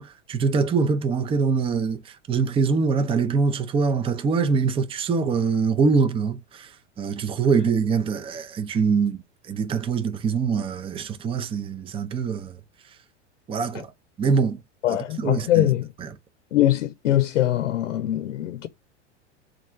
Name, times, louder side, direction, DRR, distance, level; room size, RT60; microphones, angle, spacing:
voice 1, 0.0-6.7 7.0-9.2 9.5-12.6 13.5-13.9 14.2-14.6 14.9-15.7 16.0-16.2, right 5 dB, 15° right, 0.5 m, -24 dB
voice 2, 14.8-15.9 16.5-18.7, left 13 dB, 85° left, 0.7 m, -22 dB
3.4 x 2.5 x 4.3 m
hypercardioid pair, 105°, 36 cm